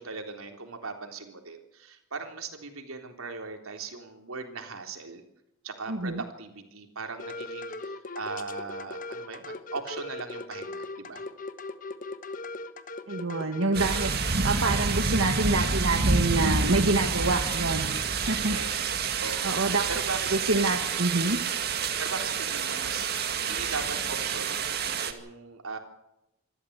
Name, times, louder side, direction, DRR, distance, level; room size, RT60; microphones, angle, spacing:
voice 1, 0.0-5.2 5.6-11.3 18.4-20.4 20.9-21.0 22.0-24.6 25.0-25.8, right 4 dB, 90° right, 4 dB, 3.7 m, -39 dB
voice 2, 5.9-6.2 13.1-17.9 18.2-18.6 19.4-19.8 20.5-21.4, right 2 dB, 65° right, 3 dB, 1.9 m, -27 dB
sound 1, 7.2-14.1, left 2 dB, 40° left, 1.3 m, -39 dB
sound 2, 13.7-25.1, right 4 dB, 50° right, 2.1 m, -28 dB
26.0 x 14.0 x 8.2 m, 0.87 s
head